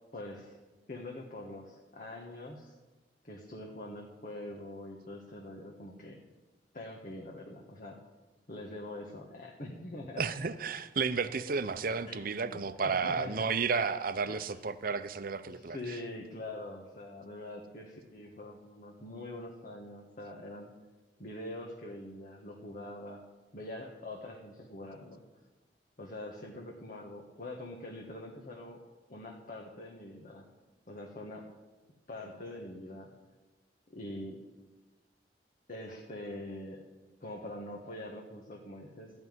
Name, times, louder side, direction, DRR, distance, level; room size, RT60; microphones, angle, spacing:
voice 1, 0.1-0.6 0.9-2.7 3.2-6.2 6.7-8.0 8.5-10.2 12.1-13.5 14.4-14.5 15.5-20.7 21.2-23.2 23.5-25.2 26.0-28.8 29.1-30.4 30.9-31.5 32.1-33.1 33.9-34.4 35.7-36.8 37.2-39.1, left 1 dB, 50° left, -1 dB, 1.4 m, -44 dB
voice 2, 10.2-16.0, right 5 dB, 55° right, 12 dB, 0.7 m, -32 dB
14.0 x 5.5 x 9.5 m, 1.2 s
head